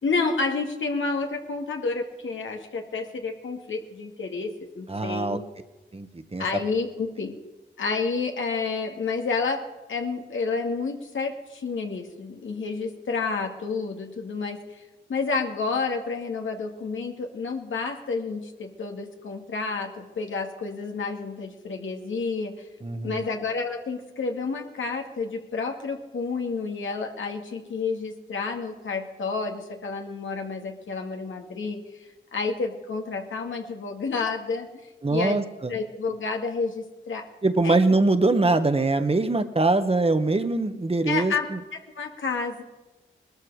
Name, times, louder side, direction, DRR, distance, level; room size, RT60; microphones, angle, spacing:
voice 1, 0.0-5.4 6.4-7.4 7.8-9.6 9.9-14.8 15.1-22.7 23.0-34.7 35.1-35.4 35.7-37.2 37.6-37.8 41.1-41.5 42.0-42.6, left 4 dB, 80° left, 3 dB, 2.3 m, -30 dB
voice 2, 4.9-5.4 5.9-6.4 22.8-23.2 35.0-35.7 37.4-41.3, right 2 dB, 30° right, 9 dB, 1.4 m, -23 dB
20.0 x 13.0 x 4.9 m, 1.1 s
cardioid pair, 60°, 20 cm